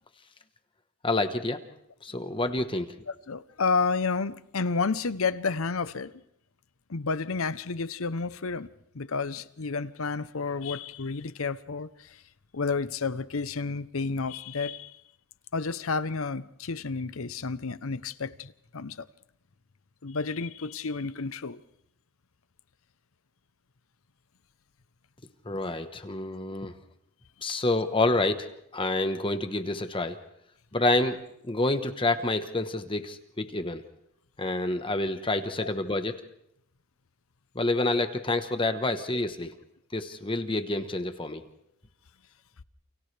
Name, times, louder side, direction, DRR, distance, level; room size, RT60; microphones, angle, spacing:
voice 1, 1.0-1.6 2.0-3.0 25.4-26.7 27.4-30.2 30.7-31.2 31.4-33.8 34.4-36.2 37.5-39.5 39.9-41.4, left 2 dB, 25° left, 1.1 m, -28 dB
voice 2, 3.3-6.1 6.9-8.7 8.9-12.2 12.5-14.9 15.5-19.1 20.0-21.6, left 4 dB, 70° left, 0.8 m, -31 dB
29.0 x 28.5 x 3.4 m
head